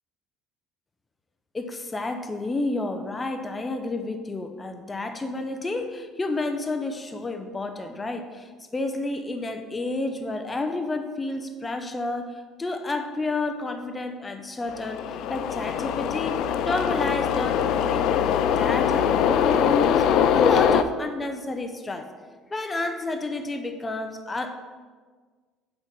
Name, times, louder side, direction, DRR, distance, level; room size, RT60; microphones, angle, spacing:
voice 1, 1.5-12.3 12.6-20.1 20.3-22.1 22.5-24.6, left 2 dB, 20° left, 7 dB, 0.6 m, -30 dB
sound 1, 14.7-20.8, left 8 dB, 65° left, 0.4 m, -22 dB
9.0 x 4.2 x 5.3 m, 1.5 s
cardioid pair, 120°, 0 cm